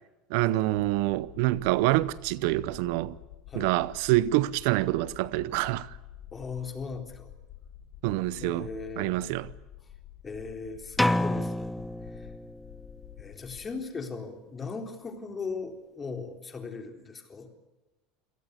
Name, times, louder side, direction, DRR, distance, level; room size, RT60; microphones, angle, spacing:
voice 1, 0.3-3.2 3.5-6.0 8.0-8.7 9.0-9.5, right 17 dB, 70° right, 0.7 m, -26 dB
sound 1, 0.7-13.7, left 12 dB, 70° left, 3.4 m, -49 dB
voice 2, 6.3-7.3 8.4-9.3 10.2-11.8 12.1-12.3 13.2-17.5, left 4 dB, 25° left, 3.9 m, -38 dB
sound 2, 11.0-12.9, left 1 dB, 5° left, 0.8 m, -28 dB
27.5 x 18.0 x 8.4 m
hypercardioid pair, 90°, 0 cm